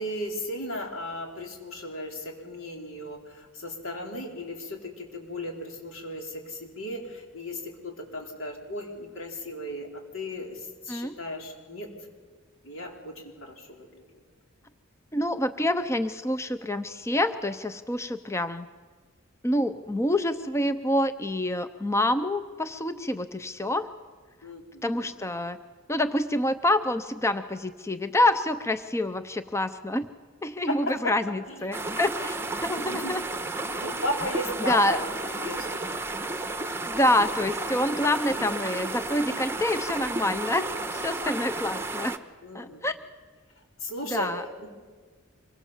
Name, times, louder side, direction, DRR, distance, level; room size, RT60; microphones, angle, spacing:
voice 1, 0.0-11.9 12.6-14.0 24.4-25.1 30.7-31.1 31.5-31.6 32.8-33.2 33.8-35.9 42.4-42.8 43.8-44.7, left 1 dB, 75° left, 1 dB, 4.5 m, -36 dB
voice 2, 15.1-18.7 19.4-23.9 24.8-25.6 25.9-30.1 30.4-33.2 34.6-35.0 36.9-42.2 42.5-43.0 44.0-44.4, left 1 dB, 15° left, 10 dB, 0.6 m, -27 dB
sound 1, 31.7-42.2, right 2 dB, 10° right, 1.1 m, -32 dB
25.0 x 23.0 x 7.4 m, 1.5 s
head